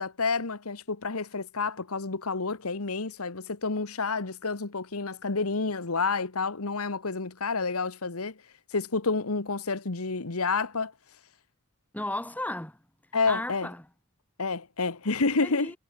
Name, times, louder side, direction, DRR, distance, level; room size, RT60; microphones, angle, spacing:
voice 1, 0.0-8.4 8.7-10.9 13.1-13.7 14.4-15.7, left 4 dB, 80° left, 1.4 m, -29 dB
voice 2, 11.9-12.8 13.2-13.9 15.3-15.8, left 1 dB, 5° left, 1.6 m, -34 dB
head